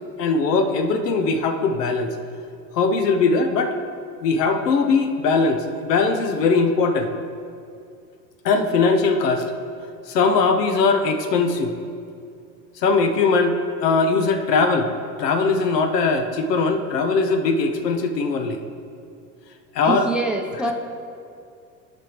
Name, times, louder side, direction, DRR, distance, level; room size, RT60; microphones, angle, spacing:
voice 1, 0.2-2.1 2.7-3.7 4.2-7.1 8.4-9.4 10.1-11.7 12.8-14.9 15.2-18.6 19.7-20.1, left 4 dB, 75° left, 7 dB, 0.8 m, -20 dB
voice 2, 19.8-20.7, right 2 dB, ahead, 2 dB, 0.7 m, -25 dB
13.5 x 5.2 x 3.1 m, 2.4 s
hypercardioid pair, 80°, 49 cm